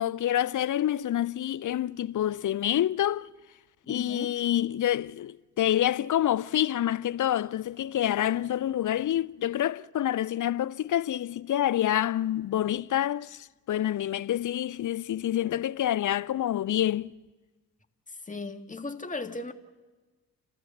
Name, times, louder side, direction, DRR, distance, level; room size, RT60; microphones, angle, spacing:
voice 1, 0.0-3.3 3.9-17.2, left 12 dB, 50° left, 0.6 m, -27 dB
voice 2, 3.8-4.3 18.3-19.5, left 3 dB, 20° left, 1.8 m, -36 dB
30.0 x 13.5 x 7.3 m
hypercardioid pair, 45°, 40 cm